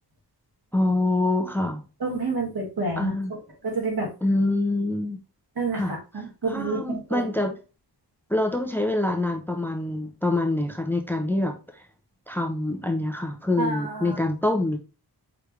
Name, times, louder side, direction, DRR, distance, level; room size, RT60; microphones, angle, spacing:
voice 1, 0.7-1.8 3.0-3.3 4.2-5.2 5.7-5.9 6.5-7.5 8.3-11.6 12.3-14.8, left 2 dB, 5° left, 3 dB, 0.6 m, -25 dB
voice 2, 2.0-4.1 5.6-7.2 13.6-14.2, right 3 dB, 70° right, -1 dB, 2.1 m, -29 dB
4.9 x 3.4 x 3.2 m, 0.32 s
wide cardioid pair, 105°, 40 cm